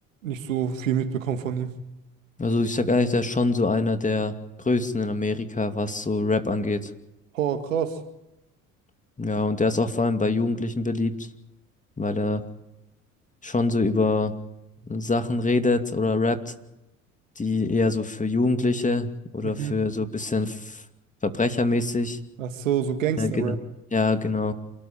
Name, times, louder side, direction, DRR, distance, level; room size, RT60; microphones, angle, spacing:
voice 1, 0.2-1.8 7.3-8.0 19.4-19.8 22.4-23.6, right 8 dB, 90° right, 2.0 m, -27 dB
voice 2, 2.4-6.9 9.2-11.1 12.0-12.4 13.4-14.3 14.8-16.5 17.4-20.8 21.2-22.2 23.2-23.6 23.9-24.5, left 3 dB, 20° left, 2.6 m, -24 dB
28.0 x 13.5 x 8.9 m
hypercardioid pair, 65°, 38 cm